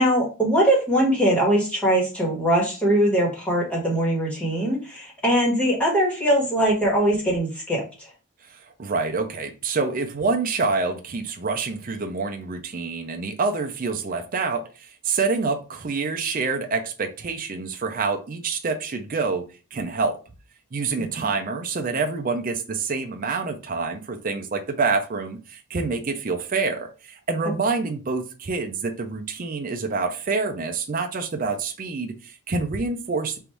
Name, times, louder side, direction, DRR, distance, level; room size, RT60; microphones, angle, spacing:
voice 1, 0.0-8.1 21.1-21.2, right 1 dB, 5° left, 1.4 m, -21 dB
voice 2, 8.4-19.5 19.7-20.2 20.7-33.4, right 4 dB, 40° right, 0.5 m, -27 dB
3.4 x 2.6 x 4.4 m
head